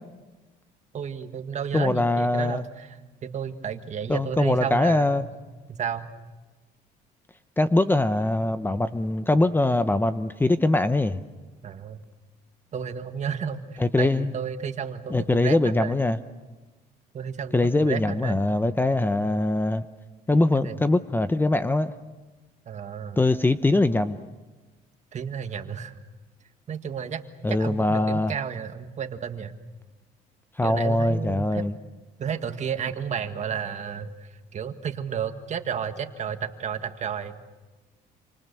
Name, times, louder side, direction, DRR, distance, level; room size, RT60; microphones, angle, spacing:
voice 1, 0.9-3.0 3.2-5.2 5.7-6.1 11.6-12.0 12.7-16.0 17.1-18.5 19.0-19.2 20.6-20.8 22.7-23.2 25.1-26.0 26.7-27.2 27.5-29.5 30.6-31.7 32.2-37.4, right 7 dB, 45° right, 1.8 m, -32 dB
voice 2, 1.7-2.6 4.1-5.2 7.6-11.2 13.8-14.3 15.1-16.2 17.5-19.9 20.3-21.9 23.2-24.1 27.4-28.3 30.6-31.7, left 2 dB, 10° left, 0.8 m, -22 dB
27.5 x 26.5 x 6.9 m
cardioid pair, 110°, 17 cm